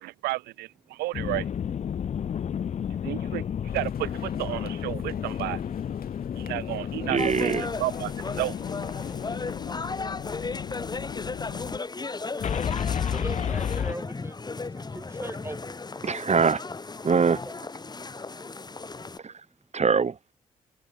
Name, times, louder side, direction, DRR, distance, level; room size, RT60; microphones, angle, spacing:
voice 1, 0.0-1.5 3.0-3.4 3.7-5.6 6.4-8.6 9.3-9.5, right 19 dB, 80° right, 0.5 m, -32 dB
sound 1, 1.1-11.8 12.4-13.9, left 8 dB, 45° left, 0.5 m, -32 dB
sound 2, 3.7-9.2, left 9 dB, 65° left, 4.9 m, -47 dB
voice 2, 7.0-7.7 16.0-16.6 17.0-17.4 19.2-19.4 19.7-20.2, right 5 dB, 45° right, 2.1 m, -23 dB
sound 3, 7.2-19.2, left 3 dB, 25° left, 1.1 m, -36 dB
voice 3, 12.3-12.7 13.0-15.7 17.3-17.5 18.2-18.3, right 1 dB, 15° right, 4.5 m, -41 dB
hypercardioid pair, 45°, 17 cm